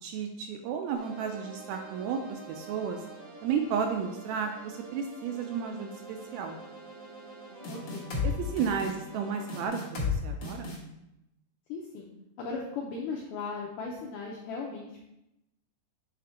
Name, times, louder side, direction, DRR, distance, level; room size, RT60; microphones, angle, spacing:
voice 1, 0.0-3.0 3.4-6.6 8.2-10.7, right 6 dB, 80° right, 4 dB, 2.2 m, -33 dB
sound 1, 0.9-9.7, right 3 dB, 65° right, 1.5 m, -47 dB
sound 2, 7.6-8.3 8.6-8.9 9.5-10.1 10.4-10.8, left 5 dB, 60° left, 1.5 m, -32 dB
voice 2, 7.7-8.1 11.7-12.1 12.4-15.0, left 4 dB, 80° left, -3 dB, 1.9 m, -37 dB
7.6 x 3.4 x 4.1 m, 0.88 s
omnidirectional pair, 4.6 m